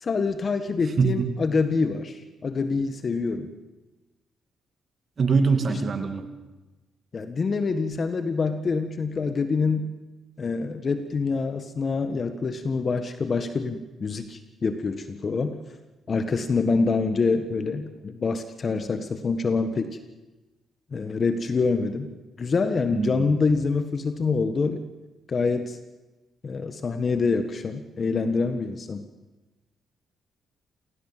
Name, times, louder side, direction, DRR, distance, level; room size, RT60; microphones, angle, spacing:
voice 1, 0.0-3.5 7.1-10.0 10.4-15.6 16.1-20.0 20.9-22.1 22.4-24.8 25.3-25.8 26.4-29.1, left 4 dB, 45° left, 9 dB, 1.6 m, -26 dB
voice 2, 5.2-6.3 22.9-23.4, right 4 dB, 45° right, 7 dB, 2.5 m, -23 dB
27.5 x 18.0 x 7.6 m, 1.1 s
cardioid pair, 80°, 0 cm